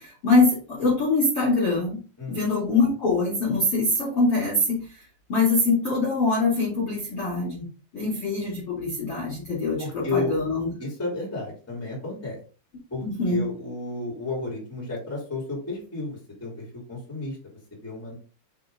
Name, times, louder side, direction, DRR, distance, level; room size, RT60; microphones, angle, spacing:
voice 1, 0.0-2.0 2.3-5.0 5.3-7.7 7.9-10.7 13.0-13.4, left 3 dB, 40° left, -7 dB, 2.5 m, -23 dB
voice 2, 2.2-2.5 9.8-10.4 10.8-12.4 12.9-17.4 17.8-18.2, left 3 dB, 5° left, -3 dB, 2.6 m, -32 dB
5.9 x 4.9 x 3.9 m, 0.37 s
omnidirectional pair, 5.0 m